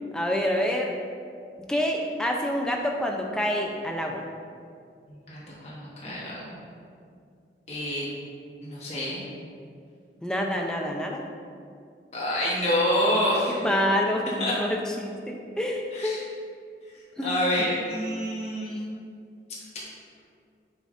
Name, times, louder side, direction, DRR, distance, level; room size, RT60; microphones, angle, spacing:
voice 1, 0.1-0.9 1.7-4.2 10.2-11.2 13.6-16.2 17.2-17.3, equal, 5° left, 0 dB, 0.4 m, -27 dB
voice 2, 5.1-6.6 7.7-8.1 8.6-9.2 12.1-13.6 14.4-14.5 15.9-16.2 17.2-18.8, left 1 dB, 40° left, -7 dB, 1.1 m, -27 dB
6.7 x 3.9 x 3.7 m, 2.3 s
head